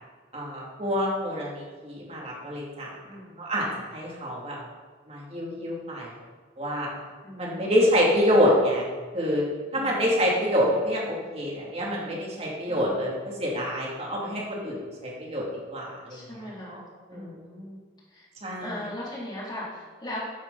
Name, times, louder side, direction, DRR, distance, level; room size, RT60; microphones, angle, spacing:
voice 1, 0.3-3.0 3.4-4.6 5.1-6.1 6.6-6.9 7.4-8.9 9.1-9.4 9.7-16.2 16.7-16.8 17.1-17.3 18.4-18.8, equal, 35° right, -3 dB, 3.0 m, -26 dB
voice 2, 3.0-3.5 7.2-7.8 9.7-10.0 12.7-12.9 16.1-16.8 17.1-17.8 18.1-18.3 18.6-20.2, left 1 dB, 25° left, -6 dB, 3.6 m, -39 dB
12.5 x 9.4 x 4.2 m, 1.4 s
head